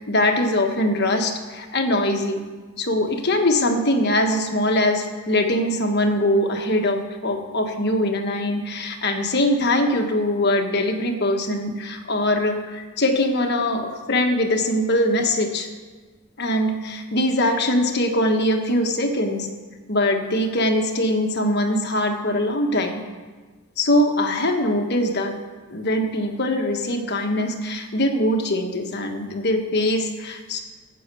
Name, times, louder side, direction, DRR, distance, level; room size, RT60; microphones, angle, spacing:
voice 1, 0.0-2.4 2.8-15.7 16.4-19.5 19.9-23.0 23.8-25.3 25.7-30.6, left 1 dB, 50° left, 4 dB, 1.4 m, -22 dB
13.5 x 8.7 x 6.9 m, 1.4 s
head